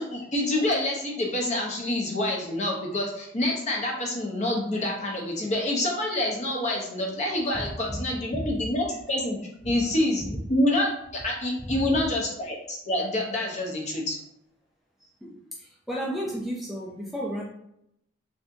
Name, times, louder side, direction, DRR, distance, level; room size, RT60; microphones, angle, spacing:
voice 1, 0.0-9.4 9.6-14.2, left 1 dB, 35° left, -1 dB, 0.8 m, -27 dB
voice 2, 15.6-17.4, equal, ahead, -4 dB, 0.3 m, -32 dB
3.4 x 2.6 x 2.6 m, 0.78 s
head